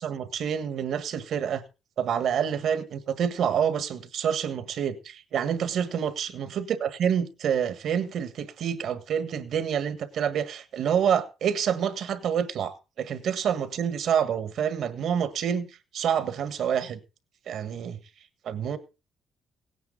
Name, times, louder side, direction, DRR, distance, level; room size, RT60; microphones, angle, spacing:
voice 1, 0.0-1.6 2.0-15.7 15.9-17.0 17.5-18.0 18.4-18.8, right 8 dB, 70° right, 1.6 m, -27 dB
17.0 x 9.4 x 3.9 m
cardioid pair, 90°, 0 cm